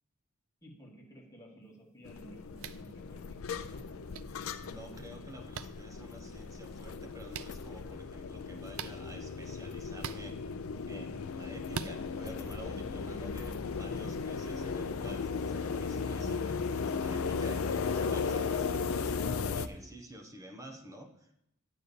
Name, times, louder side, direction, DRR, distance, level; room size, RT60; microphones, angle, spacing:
voice 1, 0.6-4.1, right 1 dB, 15° left, -2 dB, 1.7 m, -54 dB
sound 1, 2.0-19.7, left 5 dB, 70° left, 0.5 m, -36 dB
sound 2, 2.6-2.8 4.1-4.2 5.5-5.7 7.3-7.5 8.7-9.0 10.0-10.2 11.7-11.9, right 7 dB, 65° right, 0.4 m, -39 dB
voice 2, 4.6-10.4 10.9-21.4, equal, 15° right, 4 dB, 0.9 m, -50 dB
9.0 x 4.1 x 6.9 m, 0.76 s
head